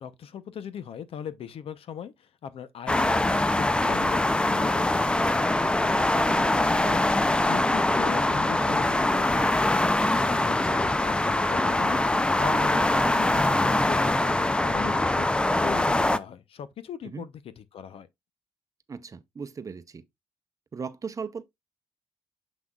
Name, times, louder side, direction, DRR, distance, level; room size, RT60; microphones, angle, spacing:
voice 1, 0.0-9.9 10.2-18.1, left 8 dB, 65° left, 0.8 m, -39 dB
sound 1, 2.9-16.2, left 1 dB, 10° left, 0.4 m, -23 dB
sound 2, 5.5-13.5, right 2 dB, 10° right, 3.1 m, -46 dB
voice 2, 18.9-20.0 20.7-21.4, right 5 dB, 35° right, 0.6 m, -37 dB
7.2 x 6.0 x 2.4 m
cardioid pair, 115°, 10 cm